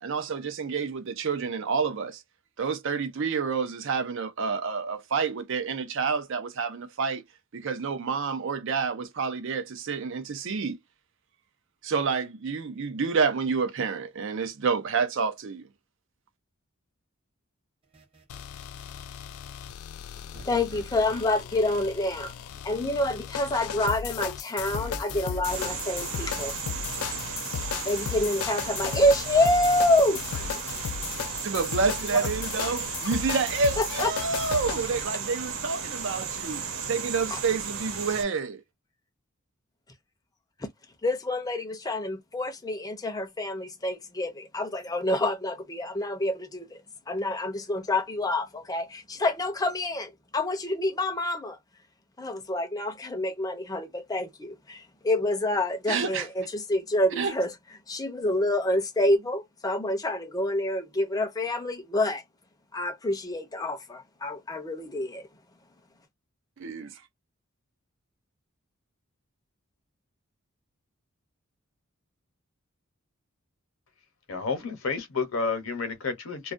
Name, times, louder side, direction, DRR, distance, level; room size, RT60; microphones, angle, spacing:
voice 1, 0.0-2.2 2.6-7.2 7.5-10.8 11.8-15.7 31.4-38.6 55.9-56.3 57.2-57.3 66.6-67.0, right 5 dB, 60° right, 0.5 m, -29 dB
sound 1, 17.9-19.1 20.3-23.4 24.7-27.9, equal, 25° right, 0.9 m, -47 dB
sound 2, 18.3-35.1, left 8 dB, 90° left, 0.3 m, -36 dB
voice 2, 20.4-22.3 22.6-26.5 27.8-30.5 33.8-34.1 37.3-37.4 41.0-46.8 47.1-51.6 52.2-57.5 57.9-62.2 62.7-65.3, left 1 dB, 15° left, 0.5 m, -27 dB
sound 3, 25.4-38.2, right 6 dB, 80° right, 1.0 m, -35 dB
voice 3, 74.3-76.5, left 4 dB, 75° left, 0.8 m, -30 dB
2.3 x 2.2 x 2.5 m
head